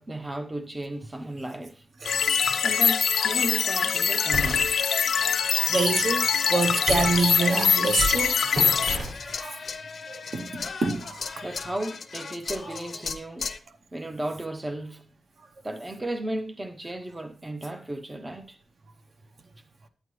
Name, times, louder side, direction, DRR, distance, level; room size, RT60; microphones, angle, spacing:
voice 1, 0.0-1.8 2.6-4.8 11.4-13.5 13.9-15.1 15.6-18.6, right 1 dB, 15° right, 0.5 m, -34 dB
sound 1, 2.0-9.0, left 7 dB, 90° left, 0.6 m, -23 dB
voice 2, 2.0-2.5 5.7-6.2 6.5-8.4 9.3-9.5 10.3-11.2, right 3 dB, 50° right, 0.7 m, -26 dB
sound 2, 4.3-4.6 5.3-6.0 6.9-7.6 8.0-8.2 8.5-9.1, equal, 75° right, 5.0 m, -31 dB
sound 3, 8.6-13.6, left 5 dB, 50° left, 0.6 m, -37 dB
9.7 x 9.0 x 3.0 m
wide cardioid pair, 175°, 0 cm